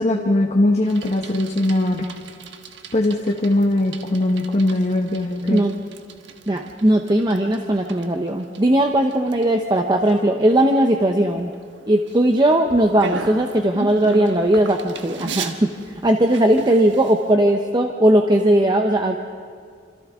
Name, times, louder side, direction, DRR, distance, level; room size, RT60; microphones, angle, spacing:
voice 1, 0.0-2.1 2.9-5.6, left 1 dB, 40° left, 0 dB, 1.2 m, -20 dB
Bicycle, 0.8-17.3, right 3 dB, 80° right, 1.3 m, -37 dB
voice 2, 6.5-11.5 11.9-19.2, right 1 dB, 25° right, 3 dB, 0.8 m, -18 dB
27.0 x 26.5 x 3.7 m, 2.1 s
head